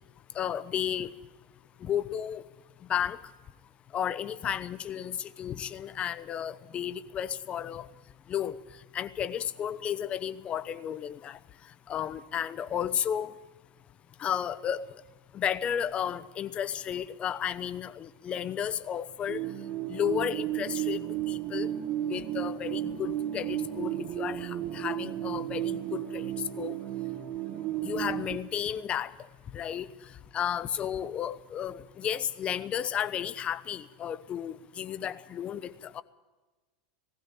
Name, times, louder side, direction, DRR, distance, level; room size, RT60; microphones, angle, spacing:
voice 1, 0.4-1.1 1.8-2.4 2.9-3.2 3.9-7.9 8.3-8.6 8.9-11.4 11.9-13.3 14.2-14.8 15.3-19.4 19.9-21.7 22.1-26.3 26.6-26.7 27.8-29.1 29.5-29.9 30.3-36.0, left 9 dB, 25° left, 14 dB, 0.9 m, -33 dB
sound 1, 19.3-28.4, right 12 dB, 40° right, 1.1 m, -33 dB
19.0 x 15.5 x 8.7 m, 1.2 s
supercardioid pair, 145°, 5 cm